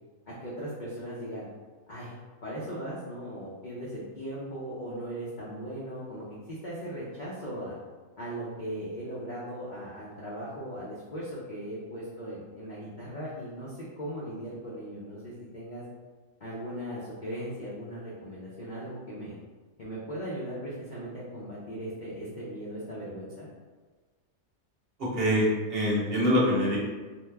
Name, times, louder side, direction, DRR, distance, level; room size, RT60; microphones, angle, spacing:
voice 1, 0.3-1.5 1.9-2.2 2.4-7.7 8.2-15.8 16.4-19.4 19.8-23.5, equal, 50° left, -7 dB, 0.5 m, -38 dB
voice 2, 25.0-26.8, equal, 50° right, -5 dB, 0.9 m, -25 dB
2.8 x 2.2 x 3.3 m, 1.4 s
omnidirectional pair, 1.5 m